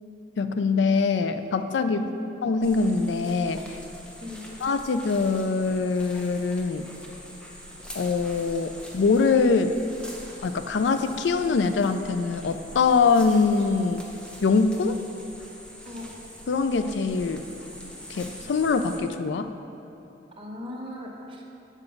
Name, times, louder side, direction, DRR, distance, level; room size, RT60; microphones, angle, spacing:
voice 1, 0.4-2.0 2.4-3.8 4.6-6.9 8.0-9.8 10.4-14.0 14.4-15.0 16.5-17.5 18.1-19.5, left 4 dB, 75° left, 10 dB, 0.4 m, -23 dB
sound 1, 2.6-19.0, equal, 5° left, 0.7 m, -44 dB
voice 2, 20.4-21.6, left 1 dB, 30° right, -1 dB, 1.0 m, -38 dB
7.0 x 5.7 x 5.3 m, 3.0 s
head